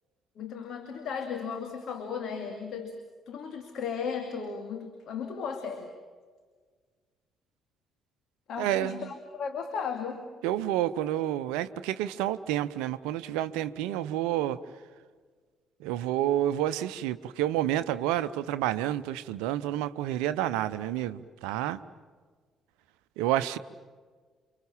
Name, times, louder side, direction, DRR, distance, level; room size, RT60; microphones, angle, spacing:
voice 1, 0.4-3.0 3.3-5.9 8.5-10.2, left 6 dB, 55° left, 2.4 m, -35 dB
voice 2, 8.6-9.1 10.4-14.6 15.8-21.8 23.2-23.6, right 13 dB, 70° right, 0.7 m, -29 dB
29.5 x 25.0 x 7.3 m
figure-of-eight pair, 45°, 0 cm